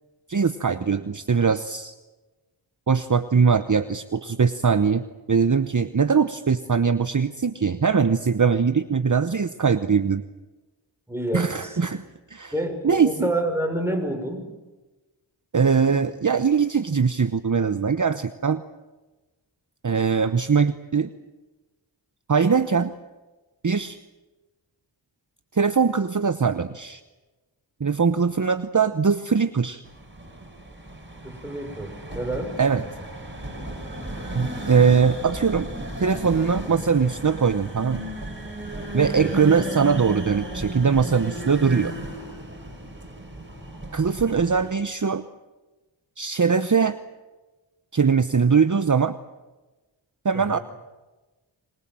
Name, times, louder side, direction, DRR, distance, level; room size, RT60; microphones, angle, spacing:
voice 1, 0.3-1.9 2.9-10.2 11.3-12.0 12.3-12.5 12.8-13.3 15.5-18.6 19.8-21.1 22.3-22.9 23.6-24.0 25.5-27.0 27.8-29.8 32.6-32.8 34.3-35.7 36.0-38.0 38.9-41.9 43.9-45.2 46.2-47.0 47.9-49.1 50.2-50.6, right 5 dB, 40° right, 11 dB, 0.9 m, -21 dB
voice 2, 11.1-11.8 12.5-14.5 31.2-32.6 39.2-39.4 50.3-50.6, right 1 dB, 5° right, 4 dB, 5.9 m, -28 dB
sound 1, 29.8-44.7, right 1 dB, 25° right, 5.6 m, -34 dB
26.5 x 22.0 x 7.6 m, 1.2 s
wide cardioid pair, 40°, 46 cm